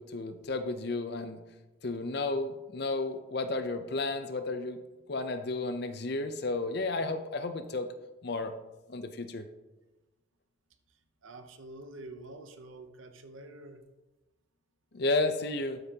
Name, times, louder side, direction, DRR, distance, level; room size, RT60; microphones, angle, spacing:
voice 1, 0.0-1.4 1.8-4.8 5.1-7.9 8.2-8.6 8.9-9.5 14.9-15.8, left 2 dB, 50° left, 8 dB, 0.6 m, -32 dB
voice 2, 10.9-13.8, right 2 dB, 75° right, 8 dB, 0.7 m, -47 dB
12.5 x 5.3 x 2.8 m, 1.1 s
head